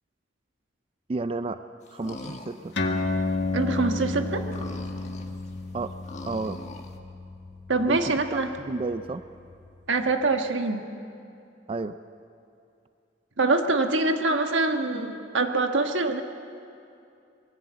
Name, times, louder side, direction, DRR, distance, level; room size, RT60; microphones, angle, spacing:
voice 1, 1.1-1.6 1.9-2.7 5.7-5.9 6.3-6.6 7.9-9.3 11.7-12.0, right 3 dB, 30° right, 11 dB, 0.4 m, -32 dB
sound 1, 1.8-3.4 3.6-3.7 4.2-7.0, left 2 dB, 40° left, 1.5 m, -42 dB
sound 2, 2.7-9.7, left 2 dB, 65° left, 1.7 m, -32 dB
voice 2, 3.5-4.4 7.7-8.5 9.9-10.8 13.4-16.2, right 3 dB, 90° right, 5 dB, 1.4 m, -24 dB
21.5 x 15.0 x 8.1 m, 2.6 s
head